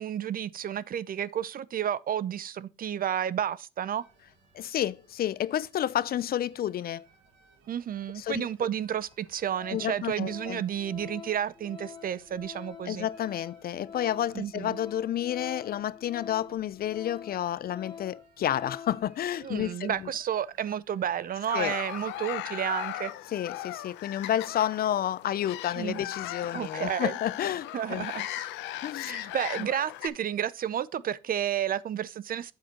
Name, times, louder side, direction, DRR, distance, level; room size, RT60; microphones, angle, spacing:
voice 1, 0.0-4.0 7.7-13.1 14.3-14.8 19.4-23.1 25.8-26.0 26.5-27.1 27.7-28.3 29.0-32.5, right 9 dB, 50° right, 0.6 m, -31 dB
sound 1, 4.0-22.2, right 5 dB, 85° right, 1.7 m, -62 dB
voice 2, 4.5-7.1 8.2-8.7 9.7-10.6 12.9-20.0 21.5-21.7 23.3-28.1 28.8-29.3, left 11 dB, 55° left, 0.5 m, -30 dB
Organ, 8.5-8.6 9.1-9.3 9.5-19.1 19.4-19.6, left 7 dB, 25° left, 0.7 m, -46 dB
sound 2, 21.5-30.1, left 14 dB, 85° left, 0.7 m, -37 dB
8.6 x 7.8 x 2.9 m
supercardioid pair, 65°, 18 cm